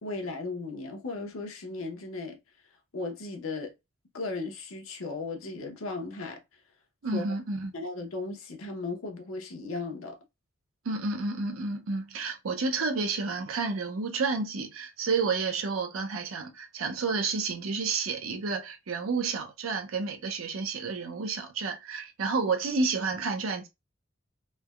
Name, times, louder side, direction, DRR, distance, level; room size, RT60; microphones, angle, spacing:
voice 1, 0.0-2.4 2.9-3.7 4.1-6.4 7.1-7.3 7.7-10.2, left 3 dB, 85° left, 0.7 m, -36 dB
voice 2, 7.0-7.7 10.9-23.7, right 4 dB, 85° right, 0.5 m, -30 dB
3.2 x 2.1 x 2.2 m
head